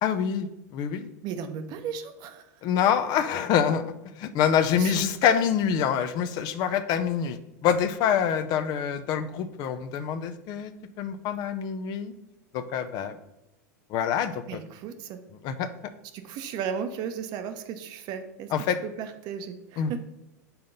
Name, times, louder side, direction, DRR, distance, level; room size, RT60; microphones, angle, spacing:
voice 1, 0.0-0.5 0.7-1.1 2.6-10.7 11.0-12.1 12.5-13.2 13.9-14.6 15.4-15.7 18.5-18.8 19.8-20.0, left 8 dB, 50° left, 10 dB, 0.6 m, -26 dB
voice 2, 1.2-2.4 4.8-5.0 14.5-15.2 16.1-18.5 18.8-20.0, right 7 dB, 50° right, 8 dB, 0.8 m, -35 dB
5.6 x 3.8 x 5.4 m, 0.89 s
hypercardioid pair, 95°, 9 cm